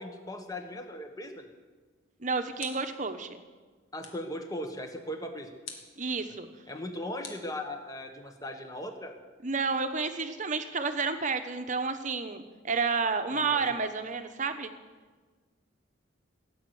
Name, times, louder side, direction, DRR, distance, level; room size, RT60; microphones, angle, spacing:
voice 1, 0.0-1.5 3.9-5.5 6.7-9.1 13.3-13.7, left 1 dB, 15° left, 5 dB, 1.4 m, -38 dB
sound 1, 1.9-3.1 4.0-4.4 5.6-6.0 7.2-8.1, left 5 dB, 75° left, 2.3 m, -47 dB
voice 2, 2.2-3.4 6.0-6.5 9.4-14.7, right 4 dB, 40° right, 8 dB, 1.0 m, -30 dB
17.5 x 8.0 x 9.5 m, 1.4 s
head